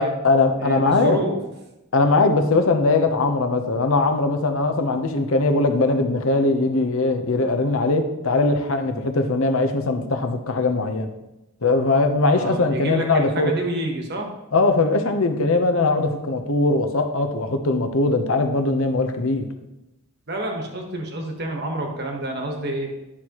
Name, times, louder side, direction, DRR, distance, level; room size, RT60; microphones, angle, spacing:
voice 1, 0.0-1.2 1.9-11.1 11.6-13.5 14.5-19.5, left 3 dB, 70° left, 6 dB, 0.8 m, -20 dB
voice 2, 0.6-1.4 12.3-14.3 20.3-22.9, right 1 dB, 45° right, 2 dB, 1.3 m, -28 dB
10.0 x 6.3 x 3.0 m, 0.95 s
head